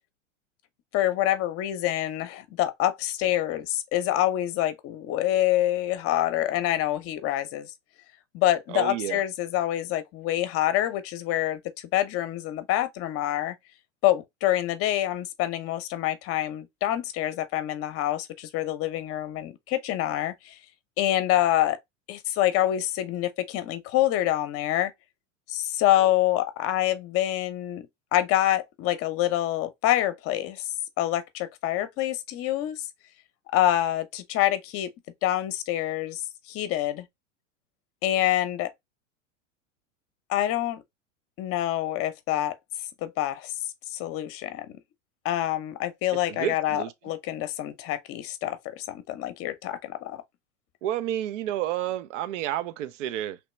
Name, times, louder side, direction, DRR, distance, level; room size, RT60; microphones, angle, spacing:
voice 1, 0.9-7.7 8.3-13.5 14.0-20.6 21.0-21.8 22.1-24.9 25.5-27.9 28.1-32.9 33.5-34.9 35.2-36.2 36.5-37.0 38.0-38.7 40.3-40.8 41.4-42.5 43.0-43.5 43.9-44.8 45.2-50.2, left 13 dB, 35° left, 0.7 m, -26 dB
voice 2, 8.7-9.2 46.3-46.9 50.8-53.4, right 12 dB, 70° right, 0.5 m, -30 dB
3.1 x 2.9 x 3.1 m
hypercardioid pair, 105°, 38 cm